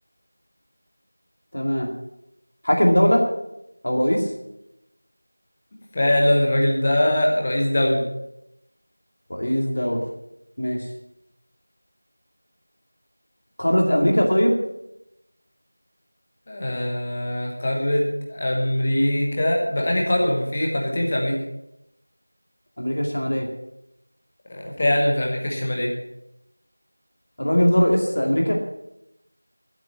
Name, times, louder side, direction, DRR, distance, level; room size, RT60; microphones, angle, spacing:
voice 1, 1.5-1.9 2.6-3.2 3.8-4.3 9.3-10.0 10.6-10.8 13.6-14.5 22.8-23.5 27.4-28.6, equal, 40° left, 0 dB, 2.2 m, -20 dB
voice 2, 5.9-8.0 16.5-18.0 18.3-21.3 24.5-25.9, left 1 dB, 15° left, 0 dB, 1.2 m, -22 dB
12.5 x 8.2 x 7.7 m, 0.84 s
figure-of-eight pair, 180°, 0 cm